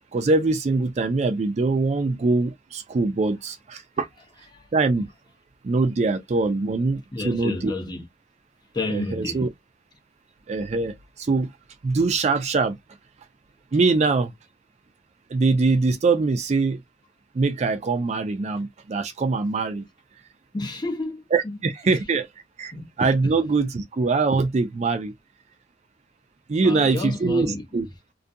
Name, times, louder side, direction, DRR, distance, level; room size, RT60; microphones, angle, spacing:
voice 1, 0.1-4.1 4.7-5.1 5.6-7.7 8.9-9.5 10.5-11.5 11.8-12.8 13.7-14.3 15.3-16.8 17.3-19.9 21.3-22.3 22.6-22.7 23.0-25.1 26.5-27.5 27.7-27.9, right 3 dB, 40° right, 0.4 m, -23 dB
voice 2, 7.1-8.0 8.7-9.4 20.5-21.6 21.8-22.0 22.7-22.9 23.2-23.4 26.6-27.9, left 2 dB, 25° left, 0.7 m, -31 dB
2.4 x 2.2 x 2.6 m
head